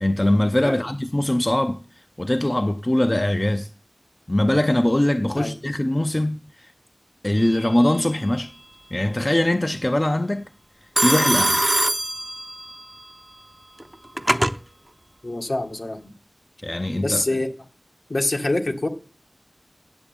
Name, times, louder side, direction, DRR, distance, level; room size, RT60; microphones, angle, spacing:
voice 1, 0.0-1.8 2.2-3.7 4.3-6.7 7.2-8.5 8.9-10.5 11.0-11.6 16.6-17.2, left 1 dB, 30° left, 0.6 m, -22 dB
Telephone, 7.4-7.9 11.0-12.8 13.8-14.6, right 1 dB, 25° right, 0.6 m, -22 dB
voice 2, 15.2-16.0 16.9-17.5 18.1-18.9, left 2 dB, 70° left, 1.8 m, -25 dB
8.8 x 7.8 x 8.8 m
wide cardioid pair, 50°, 0 cm